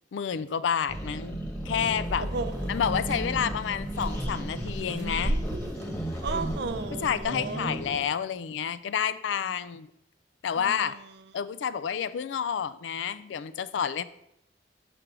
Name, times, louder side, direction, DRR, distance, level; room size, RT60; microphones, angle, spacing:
voice 1, 0.1-2.3 2.7-5.4 7.0-9.9 10.4-11.0 11.3-14.0, left 8 dB, 90° left, 15 dB, 0.4 m, -29 dB
sound 1, 0.9-8.1, right 1 dB, 15° left, 1.2 m, -34 dB
sound 2, 2.0-7.3, right 1 dB, 90° right, 0.9 m, -35 dB
voice 2, 2.2-2.8 6.2-7.8 10.6-11.0, right 4 dB, 65° right, 9 dB, 0.5 m, -35 dB
6.1 x 3.3 x 5.9 m, 0.77 s
head